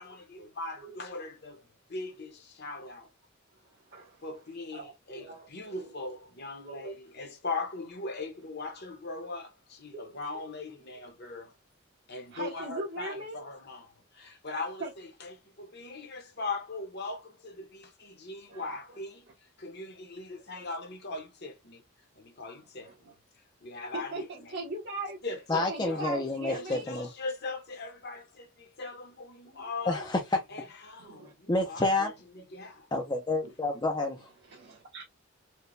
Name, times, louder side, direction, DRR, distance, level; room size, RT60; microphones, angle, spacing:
voice 1, 0.0-3.1 4.2-11.5 12.1-13.9 14.1-19.3 19.6-21.8 22.2-22.9 23.6-24.6 25.2-26.2 26.5-30.0 30.5-32.1 32.5-32.9, left 3 dB, 55° left, 1.2 m, -40 dB
voice 2, 3.9-4.3 4.7-5.9 6.6-6.9 9.9-10.4 12.3-13.4 14.8-14.9 18.5-19.0 20.5-20.7 22.8-23.1 23.9-25.2 25.7-26.9 29.5-29.7 31.0-31.3 33.4-33.5 34.5-35.0, right 2 dB, 60° right, 1.5 m, -40 dB
voice 3, 25.5-27.1 29.8-30.4 31.5-32.1 32.9-34.3, left 2 dB, 20° left, 0.6 m, -29 dB
4.5 x 2.4 x 3.2 m
head